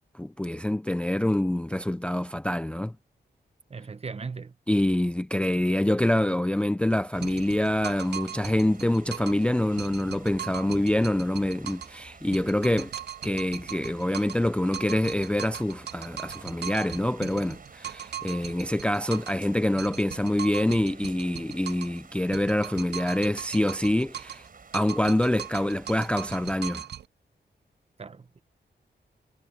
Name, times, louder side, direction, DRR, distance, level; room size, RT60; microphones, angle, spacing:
voice 1, 0.1-2.9 4.7-12.9 13.2-24.5 24.7-26.9, left 1 dB, 5° left, 0.4 m, -26 dB
voice 2, 3.7-4.5 28.0-28.4, right 4 dB, 35° right, 0.9 m, -38 dB
sound 1, 7.1-26.6, right 5 dB, 50° right, 6.8 m, -51 dB
sound 2, 7.2-9.4 9.8-12.0 12.3-14.5 14.7-19.4 19.8-22.0 22.3-24.5 24.7-27.0, right 10 dB, 65° right, 0.5 m, -39 dB
wide cardioid pair, 150°, 19 cm